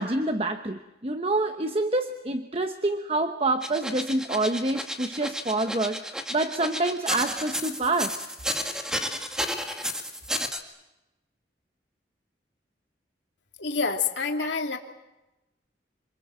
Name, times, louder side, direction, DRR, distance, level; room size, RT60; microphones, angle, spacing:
voice 1, 0.0-8.3, right 2 dB, 30° right, 7 dB, 1.0 m, -27 dB
sound 1, 3.6-10.6, equal, 5° right, 1.9 m, -32 dB
voice 2, 13.6-14.8, left 4 dB, 80° left, 3 dB, 2.7 m, -27 dB
27.0 x 25.5 x 7.6 m, 0.99 s
head